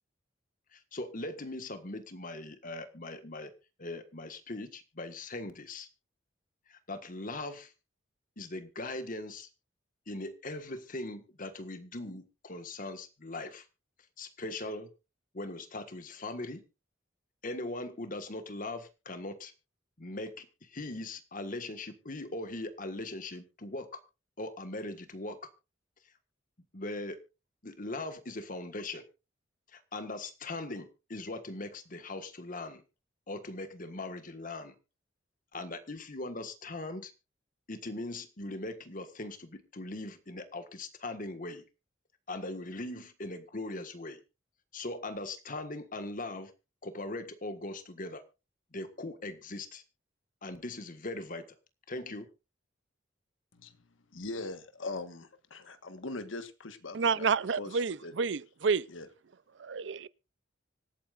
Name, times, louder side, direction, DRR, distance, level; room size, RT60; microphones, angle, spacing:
voice 1, 0.7-3.5 3.8-5.9 6.7-7.7 8.4-9.5 10.1-13.6 14.2-14.9 15.3-16.6 17.4-19.5 20.0-24.0 24.4-25.4 26.7-27.2 27.6-29.0 29.7-32.8 33.3-34.7 35.5-37.1 37.7-41.6 42.3-44.2 44.7-46.5 46.8-48.2 48.7-49.8 50.4-51.4 51.9-52.3, left 2 dB, 45° left, 1.6 m, -40 dB
voice 2, 54.1-57.3 57.6-58.1 58.9-59.1, left 3 dB, 90° left, 1.4 m, -41 dB
voice 3, 56.9-58.9 59.6-60.1, right 5 dB, 65° right, 0.5 m, -29 dB
25.5 x 8.8 x 2.5 m
head